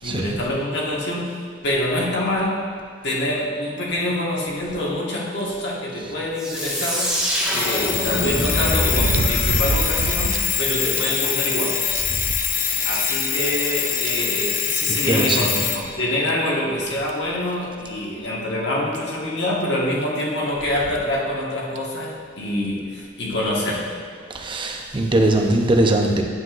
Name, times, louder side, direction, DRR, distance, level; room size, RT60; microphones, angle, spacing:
voice 1, 0.0-2.6 3.0-7.1 7.4-11.8 12.8-23.9, left 1 dB, 65° left, -3 dB, 1.4 m, -25 dB
sound 1, 6.4-10.9, equal, 5° right, 1.5 m, -26 dB
Alarm, 6.6-15.8, left 7 dB, 45° left, 0.6 m, -24 dB
sound 2, 8.8-10.5 10.9-11.0 11.5-11.6 12.0-13.1 14.1-14.2 15.6-15.7 16.3-16.4 17.1-17.3 18.6-18.7 18.9-19.0 20.7-21.1 21.8-21.9, right 4 dB, 90° right, 0.4 m, -26 dB
voice 2, 14.9-15.5 24.3-26.2, right 1 dB, 25° right, 2 dB, 0.7 m, -20 dB
9.7 x 7.7 x 2.5 m, 2.1 s
head